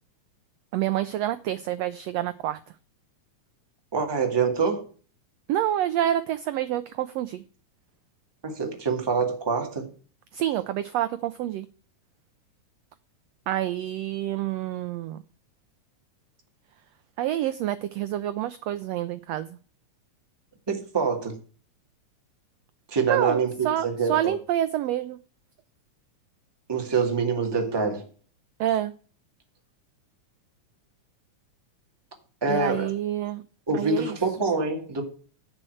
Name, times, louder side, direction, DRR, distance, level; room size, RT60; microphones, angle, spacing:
voice 1, 0.7-2.6 5.5-7.4 10.3-11.7 13.5-15.2 17.2-19.6 23.1-23.4 23.6-25.2 28.6-28.9 32.5-33.4 33.7-34.2, right 12 dB, 80° right, 1.5 m, -27 dB
voice 2, 3.9-4.8 8.4-9.9 20.7-21.3 22.9-24.3 26.7-28.1 32.4-32.9 33.7-35.0, right 4 dB, 10° right, 1.3 m, -25 dB
10.5 x 4.4 x 7.9 m
omnidirectional pair, 3.6 m